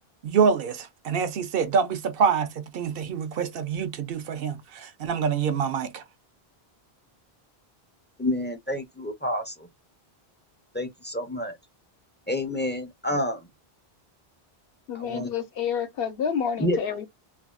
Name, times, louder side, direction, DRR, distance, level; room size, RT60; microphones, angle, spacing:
voice 1, 0.2-6.0, right 6 dB, 65° right, 0.7 m, -26 dB
voice 2, 8.2-9.7 10.7-11.6 12.3-13.4 14.9-15.3 16.6-16.8, left 1 dB, 15° left, 0.4 m, -29 dB
voice 3, 14.9-17.1, left 7 dB, 70° left, 0.9 m, -29 dB
3.3 x 2.2 x 2.3 m
omnidirectional pair, 1.1 m